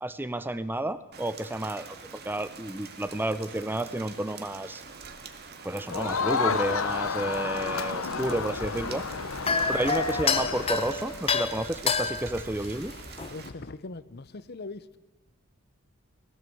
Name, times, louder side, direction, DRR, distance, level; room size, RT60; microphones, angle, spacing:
voice 1, 0.0-2.0 2.2-4.8 5.6-9.0 9.7-12.9, right 1 dB, 10° right, 13 dB, 0.6 m, -31 dB
Rain, 1.1-13.5, right 5 dB, 50° right, 1.9 m, -45 dB
Crowd, 5.9-11.2, left 5 dB, 75° left, 1.1 m, -31 dB
sound 1, 8.2-13.3, left 4 dB, 25° left, 1.0 m, -29 dB
voice 2, 13.3-15.0, left 3 dB, 50° left, 15 dB, 0.8 m, -40 dB
20.5 x 17.5 x 7.8 m, 1.1 s
head